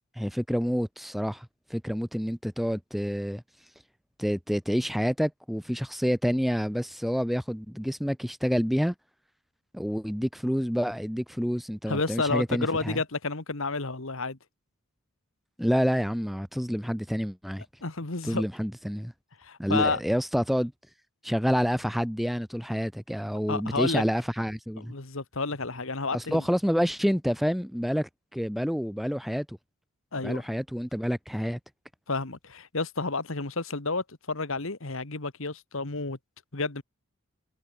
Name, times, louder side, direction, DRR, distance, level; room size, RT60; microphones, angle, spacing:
voice 1, 0.2-3.4 4.2-8.9 9.7-13.0 15.6-17.6 18.2-19.1 19.6-20.7 21.2-24.9 26.1-29.6 30.2-31.6, equal, ahead, 0.8 m, -28 dB
voice 2, 11.9-14.4 17.8-18.5 19.4-20.0 23.5-24.0 24.8-26.4 30.1-30.4 32.1-36.2 36.5-36.8, left 3 dB, 65° left, 1.7 m, -30 dB
head